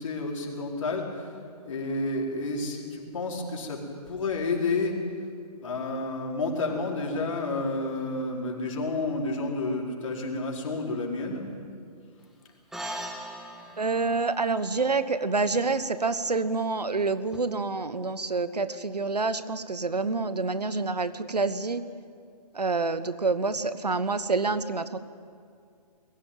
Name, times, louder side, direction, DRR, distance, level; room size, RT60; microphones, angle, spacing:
voice 1, 0.0-3.8 4.1-5.0 5.6-11.5, left 2 dB, 50° left, -1 dB, 4.7 m, -30 dB
sound 1, 12.7-17.4, right 1 dB, ahead, 1.3 m, -42 dB
voice 2, 13.8-21.8 22.5-25.0, right 3 dB, 75° right, 13 dB, 1.3 m, -27 dB
22.0 x 15.5 x 9.1 m, 2.3 s
figure-of-eight pair, 130°, 21 cm